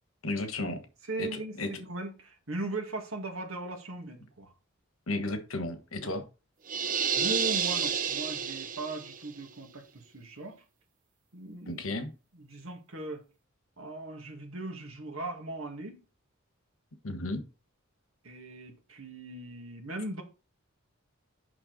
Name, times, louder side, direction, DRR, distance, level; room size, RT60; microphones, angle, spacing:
voice 1, 0.2-0.8 1.2-1.7 5.1-6.2 11.7-12.1 17.0-17.4, left 2 dB, 75° left, 1.4 m, -34 dB
voice 2, 1.1-4.5 7.2-10.6 11.3-11.8 12.4-13.2 13.8-16.0 18.2-20.2, right 2 dB, 75° right, 2.1 m, -38 dB
sound 1, 6.7-9.2, right 7 dB, 40° right, 0.7 m, -30 dB
6.7 x 5.8 x 4.1 m
head